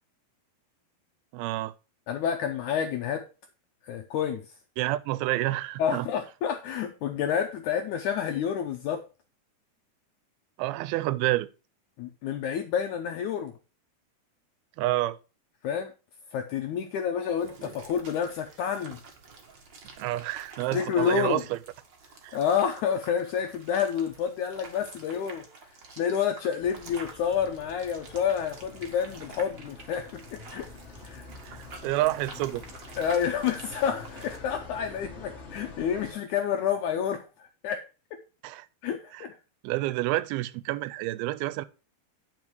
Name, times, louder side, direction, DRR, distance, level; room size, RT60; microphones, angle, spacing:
voice 1, 1.3-1.7 4.8-6.1 10.6-11.5 14.8-15.2 20.0-21.6 22.2-22.4 31.4-32.6 38.4-38.7 39.1-39.3 39.6-41.7, right 17 dB, 90° right, 2.4 m, -29 dB
voice 2, 2.1-3.2 3.8-4.5 5.8-9.0 12.0-13.5 15.6-15.9 16.3-19.0 20.7-21.4 22.3-25.5 25.9-30.7 31.0-31.3 33.0-37.9 38.8-39.4, left 8 dB, 80° left, 1.8 m, -29 dB
sound 1, 17.4-34.4, right 4 dB, 60° right, 1.1 m, -48 dB
sound 2, 26.6-36.1, left 3 dB, 35° left, 1.0 m, -46 dB
9.7 x 5.0 x 4.6 m
omnidirectional pair, 4.3 m